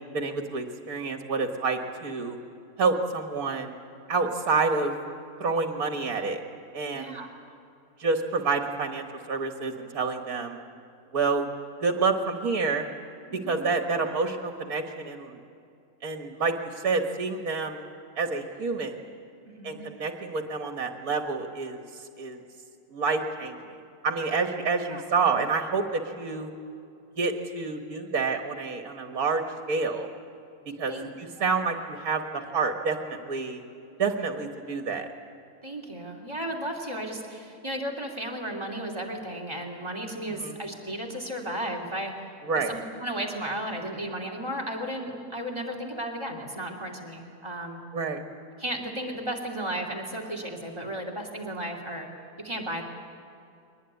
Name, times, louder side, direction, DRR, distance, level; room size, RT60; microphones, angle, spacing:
voice 1, 0.1-2.4 2.8-3.8 4.1-5.0 5.4-6.4 6.7-7.2 8.0-10.6 11.1-11.5 11.8-12.8 13.5-15.4 16.0-16.5 16.8-17.8 18.2-19.0 19.6-21.8 22.2-22.4 22.9-23.7 24.0-26.5 27.2-30.1 30.8-33.6 34.0-35.1 40.3-40.6 42.4-42.7 47.9-48.2, right 4 dB, 65° right, 4 dB, 2.1 m, -28 dB
voice 2, 6.9-7.3 13.3-13.7 19.4-19.8 24.9-25.0 30.9-31.1 31.4-31.5 35.6-42.3 42.5-47.8 48.6-52.1 52.4-52.8, right 1 dB, 15° right, 2 dB, 3.0 m, -34 dB
22.5 x 19.5 x 9.7 m, 2.6 s
omnidirectional pair, 1.7 m